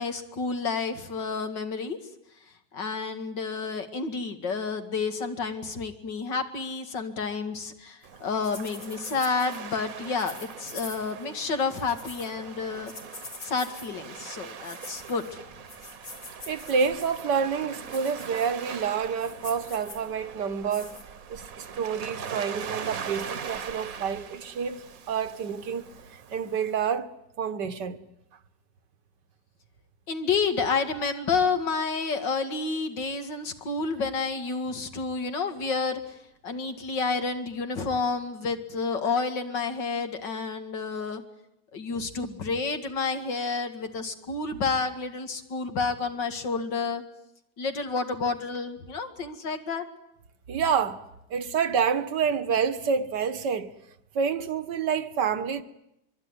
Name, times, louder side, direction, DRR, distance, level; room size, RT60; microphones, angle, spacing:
voice 1, 0.0-2.0 2.7-12.9 13.4-15.2 30.1-36.0 36.4-41.2 41.7-47.0 47.6-49.8, left 4 dB, 85° left, 2.8 m, -30 dB
Waves surf, 8.0-26.8, right 7 dB, 55° right, 1.5 m, -41 dB
sound 1, 8.4-9.6 10.2-11.2 11.6-12.3 12.9-13.9 14.5-15.3 15.7-17.3 17.8-18.7 19.0-20.1 20.7-21.0, left 3 dB, 65° left, 4.4 m, -45 dB
voice 2, 16.5-21.0 21.3-25.9 26.3-27.1 27.4-28.0 50.5-51.0 51.3-53.7 54.2-55.6, right 6 dB, 75° right, 1.8 m, -28 dB
24.0 x 23.5 x 9.8 m
omnidirectional pair, 1.9 m